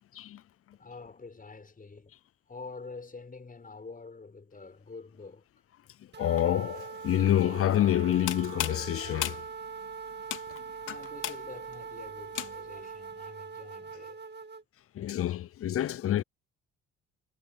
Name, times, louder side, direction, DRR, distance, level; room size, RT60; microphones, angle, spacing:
voice 1, 0.7-2.2 2.5-5.5 10.9-14.2, left 4 dB, 30° left, 5.9 m, -46 dB
sound 1, 6.1-14.6, right 5 dB, 35° right, 2.1 m, -42 dB
voice 2, 6.2-9.4 14.9-16.2, left 12 dB, 50° left, 0.5 m, -27 dB
sound 2, 8.0-12.9, left 12 dB, 80° left, 3.1 m, -38 dB
cardioid pair, 90°, 30 cm